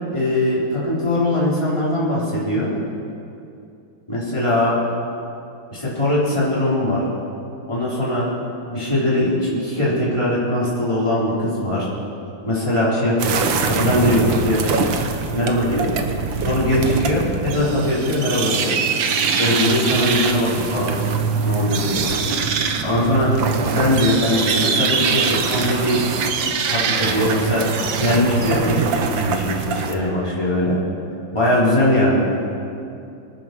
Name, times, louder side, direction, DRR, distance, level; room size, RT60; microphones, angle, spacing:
voice 1, 0.1-2.7 4.1-4.8 5.7-7.0 7.7-8.3 8.7-11.9 12.5-13.4 13.7-14.8 15.3-15.9 16.4-18.7 19.4-20.9 21.4-22.0 22.8-23.4 23.7-26.0 26.7-27.7 27.9-30.8 31.3-32.2, left 1 dB, 15° left, -8 dB, 4.4 m, -20 dB
sound 1, 13.2-30.0, right 5 dB, 70° right, 1.7 m, -23 dB
24.5 x 9.3 x 6.2 m, 2.6 s
omnidirectional pair, 2.2 m